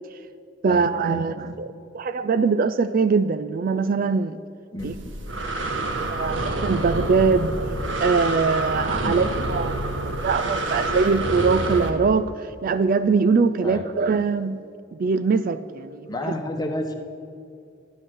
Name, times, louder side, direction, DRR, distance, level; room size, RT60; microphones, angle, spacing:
voice 1, 0.6-4.4 4.8-4.9 6.1-7.5 8.0-9.8 10.2-14.6 14.9-16.1, right 4 dB, 45° right, 13 dB, 0.3 m, -22 dB
voice 2, 4.7-5.1 9.0-9.2 13.6-13.8 16.1-17.0, left 1 dB, 20° left, 3 dB, 1.2 m, -30 dB
Breathing, 4.8-11.9, right 2 dB, 65° right, 1.3 m, -27 dB
12.5 x 10.0 x 6.3 m, 2.5 s
head